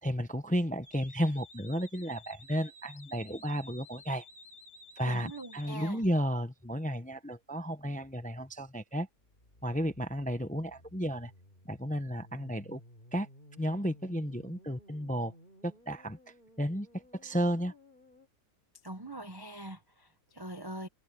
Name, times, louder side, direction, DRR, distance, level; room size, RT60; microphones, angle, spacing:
voice 1, 0.0-4.3 5.0-9.1 9.6-11.3 11.6-12.8 13.1-13.3 13.6-15.3 15.6-16.2 16.6-16.9 17.2-17.7, equal, 10° left, 0.5 m, -33 dB
sound 1, 0.8-6.1 9.2-18.3, left 1 dB, 30° left, 4.6 m, -55 dB
voice 2, 5.1-6.0 18.8-20.9, right 1 dB, 15° right, 0.9 m, -43 dB
omnidirectional pair, 1.7 m